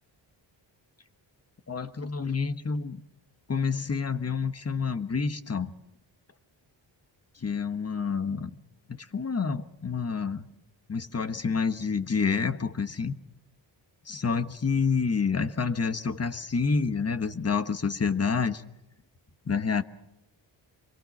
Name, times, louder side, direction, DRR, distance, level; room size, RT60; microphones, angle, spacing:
voice 1, 1.7-3.0 3.5-5.7 7.4-8.5 9.1-10.5 10.9-13.1 14.1-18.6 19.5-19.8, left 5 dB, 35° left, 11 dB, 1.3 m, -28 dB
26.0 x 23.0 x 6.0 m, 0.92 s
wide cardioid pair, 110°, 45 cm